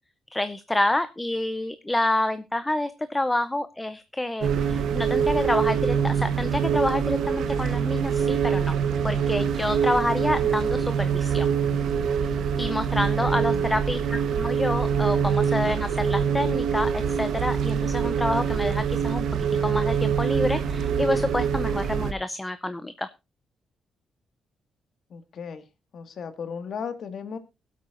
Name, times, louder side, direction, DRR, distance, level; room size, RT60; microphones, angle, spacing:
voice 1, 0.3-8.7 9.0-11.5 12.6-23.1, left 1 dB, 10° left, 12 dB, 0.6 m, -28 dB
sound 1, 4.4-22.1, right 7 dB, 70° right, 1.1 m, -24 dB
voice 2, 13.2-13.7 25.1-25.7 25.9-27.4, left 6 dB, 50° left, 10 dB, 1.9 m, -36 dB
21.5 x 8.3 x 2.5 m, 0.26 s
cardioid pair, 155°, 0 cm